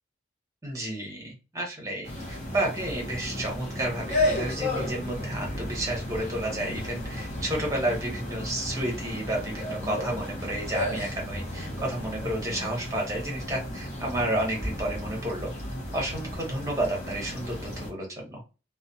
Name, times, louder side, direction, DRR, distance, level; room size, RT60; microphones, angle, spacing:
voice 1, 0.6-15.5 15.9-18.4, right 1 dB, 15° right, -1 dB, 0.9 m, -31 dB
sound 1, 2.0-17.9, left 1 dB, 35° left, 0.8 m, -33 dB
2.3 x 2.2 x 2.6 m, 0.31 s
head